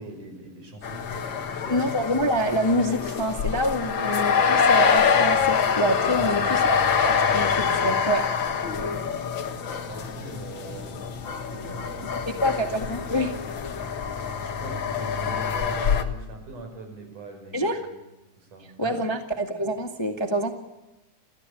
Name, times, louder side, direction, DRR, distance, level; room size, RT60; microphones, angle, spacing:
voice 1, 0.0-1.8 6.1-6.7 8.6-9.6 9.8-10.9 11.3-12.6 14.4-18.0 18.4-19.0, right 2 dB, 90° right, 4 dB, 7.1 m, -41 dB
sound 1, 0.8-16.0, left 6 dB, 50° left, 1.8 m, -25 dB
voice 2, 1.7-6.7 7.0-8.2 12.4-13.3 17.5-17.8 18.8-20.5, equal, 15° left, 4 dB, 1.1 m, -26 dB
29.0 x 15.0 x 8.6 m, 1.0 s
omnidirectional pair, 3.5 m